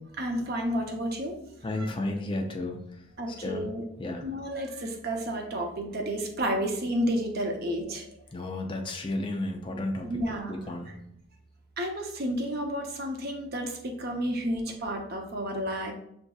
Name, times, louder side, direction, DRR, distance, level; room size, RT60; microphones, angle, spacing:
voice 1, 0.2-1.4 1.7-1.9 3.2-3.8 4.2-8.1 10.0-10.9 11.8-15.9, equal, 45° right, 2 dB, 0.7 m, -31 dB
voice 2, 1.6-2.8 3.4-3.7 4.0-4.2 8.3-10.1 10.5-10.9, left 2 dB, 25° left, 3 dB, 0.4 m, -32 dB
6.9 x 2.6 x 2.3 m, 0.75 s
head